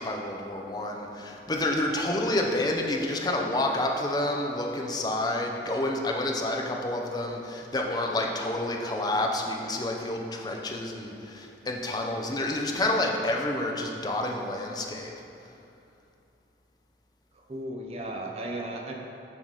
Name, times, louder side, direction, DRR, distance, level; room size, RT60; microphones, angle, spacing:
voice 1, 0.0-15.1, left 1 dB, 20° left, 1 dB, 0.5 m, -29 dB
voice 2, 17.3-18.9, right 1 dB, 35° right, -1 dB, 0.6 m, -35 dB
7.3 x 4.0 x 4.8 m, 2.7 s
head